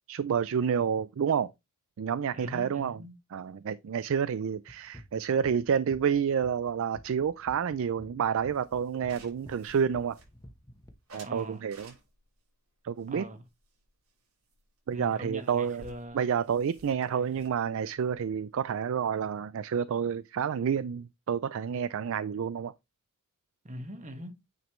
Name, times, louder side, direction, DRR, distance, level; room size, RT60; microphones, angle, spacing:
voice 1, 0.1-1.5 2.0-3.0 3.3-10.2 11.1-11.9 12.8-13.3 14.9-15.8 16.1-22.7, right 7 dB, 65° right, 0.4 m, -29 dB
voice 2, 2.3-3.1 11.2-11.6 13.1-13.4 14.9-16.3 17.0-17.3 23.6-24.4, equal, 35° right, 1.5 m, -42 dB
sound 1, 4.7-10.9, equal, 15° left, 1.0 m, -50 dB
sound 2, 8.5-10.6 11.1-12.4 13.0-14.2 14.5-14.6 14.9-15.0 15.2-19.1, right 3 dB, 85° right, 5.4 m, -55 dB
9.3 x 5.1 x 3.1 m
head